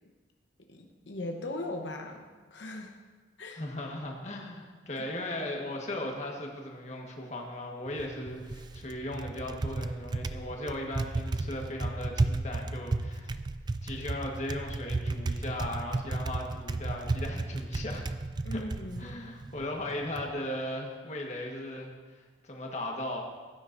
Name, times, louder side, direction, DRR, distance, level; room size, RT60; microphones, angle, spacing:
voice 1, 0.7-2.9 3.4-3.6 5.0-5.1 18.4-19.2, left 2 dB, 90° left, 2 dB, 1.0 m, -39 dB
voice 2, 3.6-13.3 13.8-18.0 18.5-18.6 19.0-23.2, left 1 dB, 40° left, 0 dB, 1.4 m, -37 dB
Typing, 7.9-20.3, right 2 dB, 25° right, 0.3 m, -34 dB
16.5 x 9.3 x 2.7 m, 1.4 s
head